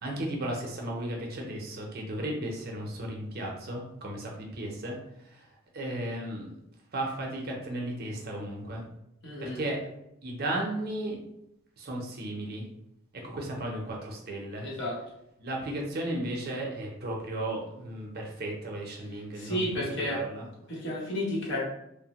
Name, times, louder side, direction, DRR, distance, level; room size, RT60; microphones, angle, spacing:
voice 1, 0.0-5.0 5.2-5.5 5.7-6.5 6.9-8.8 9.4-9.8 10.2-11.2 11.8-12.7 13.1-14.7 15.4-20.5, right 1 dB, 45° right, 0 dB, 0.6 m, -35 dB
voice 2, 9.2-9.6 14.6-15.0 19.3-20.2 20.7-21.6, left 1 dB, 55° left, -4 dB, 0.9 m, -31 dB
3.1 x 2.0 x 2.9 m, 0.81 s
head